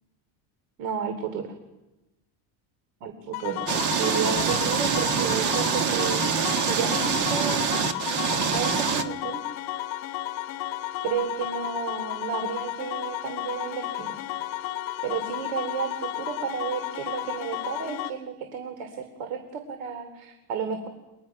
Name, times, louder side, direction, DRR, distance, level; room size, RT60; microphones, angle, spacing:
voice 1, 0.8-1.5 3.0-6.2 6.6-7.8 8.3-9.4 11.0-14.2 15.0-20.9, right 6 dB, 85° right, 7 dB, 3.3 m, -32 dB
sound 1, 3.3-18.1, left 15 dB, 60° left, 1.9 m, -33 dB
sound 2, 3.7-9.0, right 7 dB, 45° right, 1.7 m, -25 dB
30.0 x 25.0 x 5.9 m, 1.0 s
cardioid pair, 170°, 43 cm